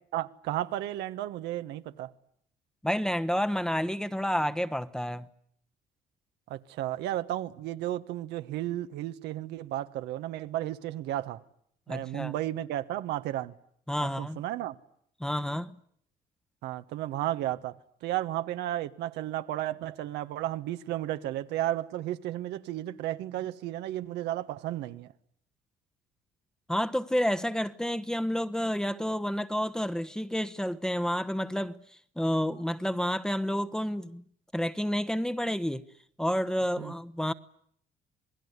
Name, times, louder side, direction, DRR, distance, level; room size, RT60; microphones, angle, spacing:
voice 1, 0.1-2.1 6.5-11.4 11.9-13.5 14.0-14.8 16.6-25.1 36.8-36.9, right 13 dB, 85° right, 1.4 m, -33 dB
voice 2, 2.8-5.3 11.9-12.3 13.9-14.4 15.2-15.7 26.7-31.8 32.2-34.2 34.5-35.9 36.2-37.3, equal, 5° left, 1.1 m, -30 dB
27.5 x 20.0 x 9.6 m
cardioid pair, 110°, 17 cm